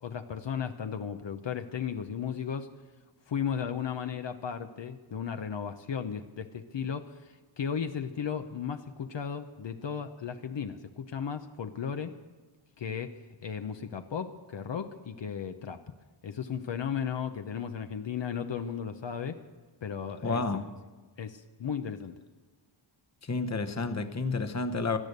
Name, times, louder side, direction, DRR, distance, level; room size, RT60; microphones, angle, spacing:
voice 1, 0.0-2.7 3.3-12.2 12.8-15.8 16.2-19.4 19.8-20.6 21.2-22.2, left 7 dB, 60° left, 0.9 m, -35 dB
voice 2, 20.2-20.7 23.2-25.0, left 3 dB, 35° left, 1.0 m, -30 dB
17.5 x 12.5 x 6.7 m
wide cardioid pair, 120°, 49 cm